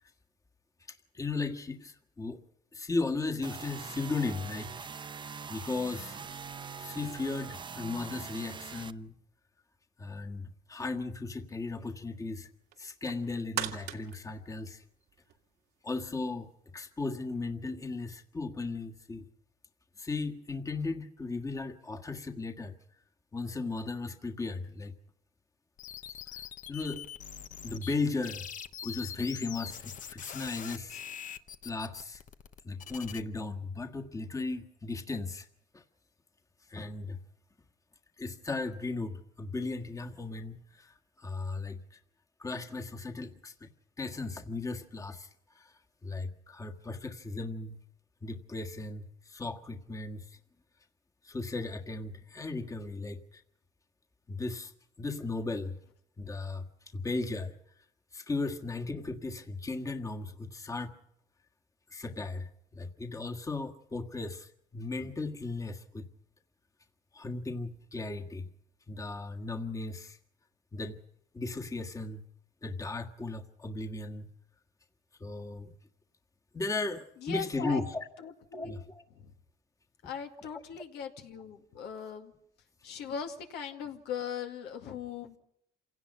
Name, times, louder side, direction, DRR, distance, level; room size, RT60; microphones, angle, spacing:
voice 1, 0.9-2.4 2.7-4.9 5.5-6.2 6.8-9.1 10.0-12.5 12.8-14.8 15.8-16.5 16.7-19.2 20.0-22.8 23.3-24.9 26.7-27.0 27.6-28.5 28.8-31.0 31.6-32.2 32.6-35.5 35.7-35.8 36.7-37.2 38.2-42.0 42.4-43.7 44.0-45.3 45.5-45.7 46.0-47.8 48.2-50.2 51.2-53.4 54.3-54.7 55.0-55.8 56.2-56.6 56.9-57.5 58.1-60.9 61.9-66.0 67.1-68.5 68.9-70.2 70.7-71.0 71.3-72.2 72.6-74.3 75.2-75.7 76.5-78.0 78.5-79.0, left 3 dB, 20° left, 4 dB, 1.6 m, -36 dB
sound 1, 3.4-8.9, right 6 dB, 30° right, 0.8 m, -43 dB
sound 2, 12.7-15.5 15.9-16.0, right 11 dB, 80° right, 2.1 m, -39 dB
sound 3, 25.8-27.9 28.2-33.2, left 8 dB, 50° left, 1.0 m, -43 dB
voice 2, 77.2-77.9 78.2-78.8 79.1-79.3 80.0-82.3 82.8-85.4, left 7 dB, 80° left, 4 dB, 2.3 m, -40 dB
27.5 x 17.5 x 5.5 m, 0.73 s
cardioid pair, 110°, 17 cm